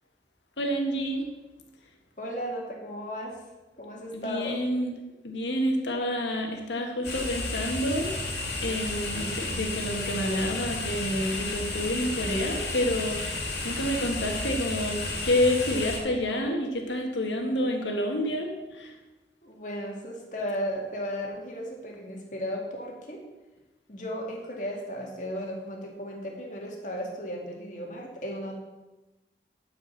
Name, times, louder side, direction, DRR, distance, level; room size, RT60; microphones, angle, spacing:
voice 1, 0.6-1.3 4.1-4.9 5.2-8.3 8.6-18.9, left 1 dB, 90° left, 2 dB, 1.6 m, -29 dB
voice 2, 2.2-3.4 3.8-4.6 19.4-23.2 23.9-28.6, equal, 45° left, -1 dB, 2.2 m, -35 dB
sound 1, 7.0-16.0, left 2 dB, 70° left, 2.4 m, -32 dB
11.5 x 5.3 x 6.2 m, 1.1 s
head